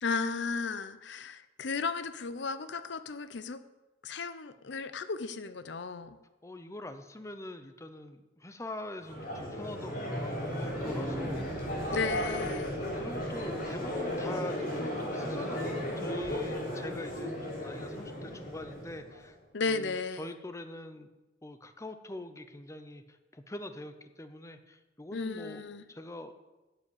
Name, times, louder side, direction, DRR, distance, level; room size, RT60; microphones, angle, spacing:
voice 1, 0.0-3.6 4.0-6.2 11.9-12.8 19.5-20.2 25.1-25.8, left 4 dB, 65° left, 12 dB, 0.6 m, -34 dB
voice 2, 6.4-11.4 13.0-19.4 19.7-21.1 21.4-25.6 25.9-26.3, left 1 dB, 15° left, 9 dB, 0.7 m, -44 dB
Crowd, 9.0-19.2, left 1 dB, 50° left, 3.6 m, -35 dB
sound 1, 9.5-15.0 15.3-15.4 15.6-15.7 15.9-16.0, right 1 dB, 15° right, 1.2 m, -43 dB
9.8 x 7.9 x 8.5 m, 1.1 s
head